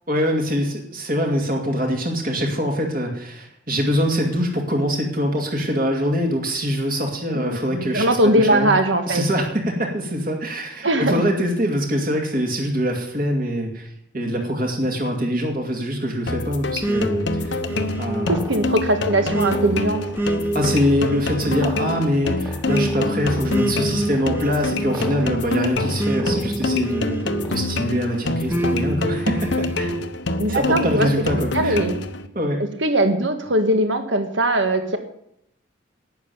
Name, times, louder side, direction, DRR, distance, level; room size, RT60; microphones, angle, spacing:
voice 1, 0.1-8.7 9.1-13.9 14.1-17.6 18.0-18.3 20.5-29.9 30.5-31.8 32.3-32.6, equal, 45° right, 1 dB, 2.3 m, -24 dB
voice 2, 7.3-9.2 10.8-11.2 18.3-20.0 30.4-31.1 31.5-31.9 32.8-35.0, right 1 dB, 70° right, 7 dB, 1.7 m, -20 dB
sound 1, 16.3-32.3, left 2 dB, 65° left, 1.0 m, -26 dB
sound 2, 16.8-27.9 28.5-30.0, right 1 dB, 10° right, 1.0 m, -27 dB
11.5 x 9.3 x 7.0 m, 0.77 s
head